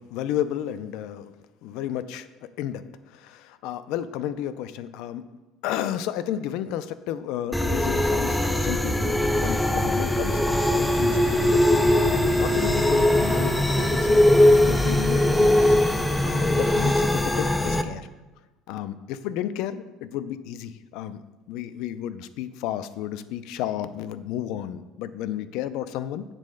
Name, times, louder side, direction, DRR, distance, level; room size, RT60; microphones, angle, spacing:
voice 1, 0.0-1.3 1.6-5.2 5.6-10.4 10.8-11.5 12.1-15.8 16.2-18.1 18.7-21.2 21.5-26.2, left 11 dB, 70° left, 13 dB, 0.4 m, -32 dB
sound 1, 7.5-17.8, left 1 dB, 5° left, 0.4 m, -21 dB
sound 2, 10.8-16.9, right 4 dB, 50° right, 1.2 m, -40 dB
7.6 x 4.1 x 6.3 m, 1.1 s
cardioid pair, 155°, 0 cm